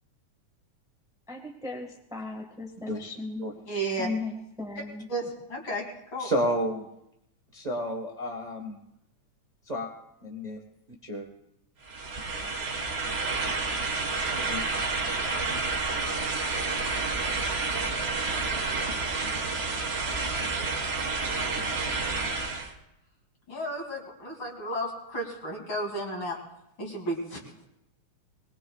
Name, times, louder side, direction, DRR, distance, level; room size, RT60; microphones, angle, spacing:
voice 1, 1.3-3.5 4.0-5.1, left 3 dB, ahead, 2 dB, 0.8 m, -36 dB
voice 2, 3.7-4.1 5.1-5.8 6.1-6.3 13.4-13.5 15.5-15.6 23.5-26.4 26.8-27.4, right 1 dB, 40° left, -1 dB, 3.5 m, -33 dB
voice 3, 6.2-6.9 7.5-8.8 9.6-9.9 10.2-10.6 11.0-11.3 12.3-12.5 14.5-14.6, equal, 55° right, 0 dB, 0.4 m, -31 dB
sound 1, 11.8-22.7, right 3 dB, 35° right, 1.0 m, -29 dB
22.0 x 20.0 x 2.4 m, 0.82 s
omnidirectional pair, 3.4 m